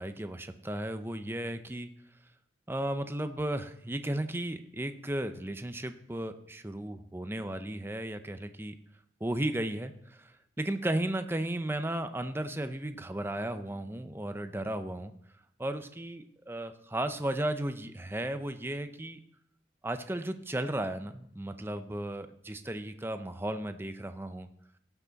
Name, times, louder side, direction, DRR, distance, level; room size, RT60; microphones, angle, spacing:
voice 1, 0.0-1.9 2.7-8.7 9.2-15.1 15.6-19.2 19.8-24.5, right 1 dB, 15° right, 9 dB, 0.6 m, -35 dB
17.5 x 5.9 x 4.0 m, 0.68 s
head